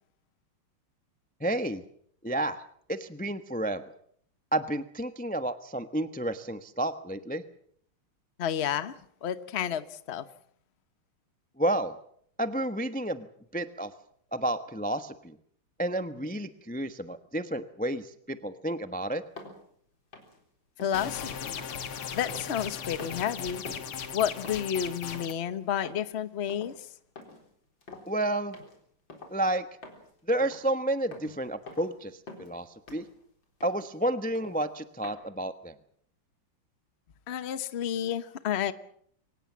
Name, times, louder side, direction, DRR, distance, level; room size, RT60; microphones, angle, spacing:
voice 1, 1.4-1.8 2.2-2.6 2.9-3.8 4.5-7.4 11.6-11.9 12.4-13.3 13.5-13.9 14.3-15.4 15.8-19.2 28.0-28.6 29.3-29.6 30.3-33.0 33.6-35.7, right 1 dB, 10° left, 10 dB, 0.4 m, -31 dB
voice 2, 8.4-8.9 9.2-10.2 20.8-21.6 22.1-23.6 24.1-26.7 37.3-38.7, left 9 dB, 40° left, 13 dB, 1.0 m, -31 dB
sound 1, 19.4-19.6 20.1-20.4 20.8-21.1 21.6-22.7 23.0-23.3 23.6-24.0 24.4-24.7 25.1-25.4 25.8-26.1 26.5-26.8 27.2-27.5 27.8-28.1 28.5-28.8 29.1-29.4 29.8-30.1 30.4-30.7 31.1-31.4 31.7-32.0 32.3-32.6 32.9-33.2 33.6-33.9 34.3-34.6 35.0-35.1, left 2 dB, 60° left, 4.7 m, -46 dB
sound 2, 20.9-25.3, left 7 dB, 85° left, 2.4 m, -37 dB
24.5 x 19.0 x 7.4 m, 0.65 s
omnidirectional pair, 2.4 m